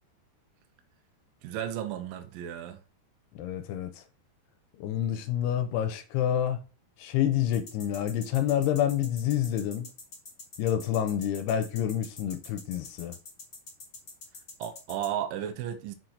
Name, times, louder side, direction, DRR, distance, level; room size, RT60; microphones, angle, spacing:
voice 1, 1.4-2.8 14.6-16.0, right 10 dB, 80° right, 2.1 m, -34 dB
voice 2, 3.4-4.0 4.8-6.6 7.0-9.9 10.6-13.2, left 10 dB, 80° left, 2.6 m, -28 dB
sound 1, 7.5-15.1, left 3 dB, 45° left, 1.1 m, -45 dB
6.3 x 4.5 x 3.9 m
omnidirectional pair, 4.7 m